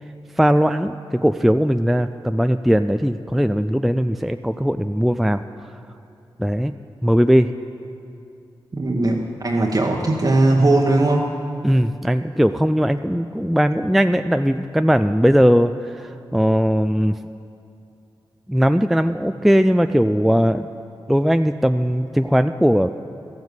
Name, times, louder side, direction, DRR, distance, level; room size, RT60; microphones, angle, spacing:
voice 1, 0.4-5.4 6.4-6.7 7.0-7.5 11.6-17.2 18.5-20.7 21.1-22.9, equal, ahead, 9 dB, 0.3 m, -19 dB
voice 2, 8.7-11.3, right 2 dB, 40° right, -1 dB, 1.0 m, -18 dB
13.0 x 7.2 x 7.9 m, 2.6 s
cardioid pair, 60°, 9 cm